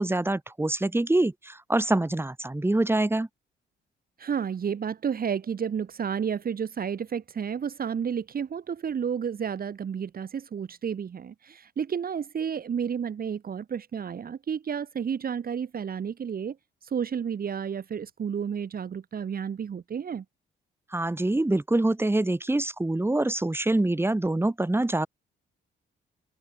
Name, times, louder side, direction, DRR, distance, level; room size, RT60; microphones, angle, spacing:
voice 1, 0.0-3.3 20.9-25.1, right 2 dB, 10° right, 4.2 m, -25 dB
voice 2, 4.2-16.6 16.8-20.2, right 7 dB, 50° right, 2.6 m, -31 dB
cardioid pair, 90°, 20 cm